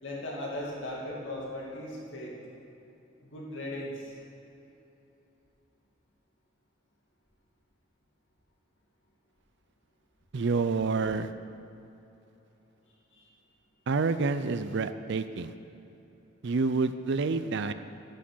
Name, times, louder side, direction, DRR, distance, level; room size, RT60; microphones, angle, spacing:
voice 1, 0.0-2.3 3.2-4.1 13.1-13.3, left 1 dB, 70° left, -3 dB, 2.3 m, -38 dB
voice 2, 10.3-11.3 13.9-15.5 16.4-17.7, right 4 dB, 65° right, 11 dB, 0.5 m, -28 dB
11.5 x 8.5 x 6.2 m, 2.9 s
head